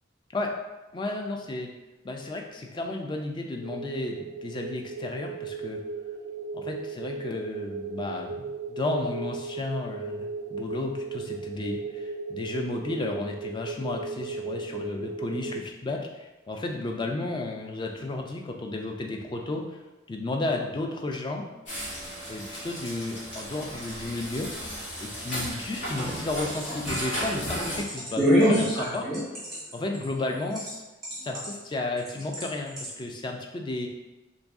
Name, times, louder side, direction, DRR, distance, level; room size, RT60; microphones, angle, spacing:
voice 1, 0.9-1.7 2.0-5.8 6.5-8.4 8.7-19.6 20.1-21.5 22.3-24.5 25.0-29.1 29.7-30.8 31.2-33.9, left 2 dB, 25° left, 2 dB, 0.3 m, -33 dB
sound 1, 3.6-15.6, right 4 dB, 90° right, 0.3 m, -36 dB
sound 2, 21.7-27.8, equal, 60° left, 1.1 m, -35 dB
sound 3, 26.5-30.7 31.0-31.6 32.1-32.4 32.8-32.9, equal, ahead, 1.1 m, -25 dB
3.0 x 2.5 x 3.5 m, 1.1 s
head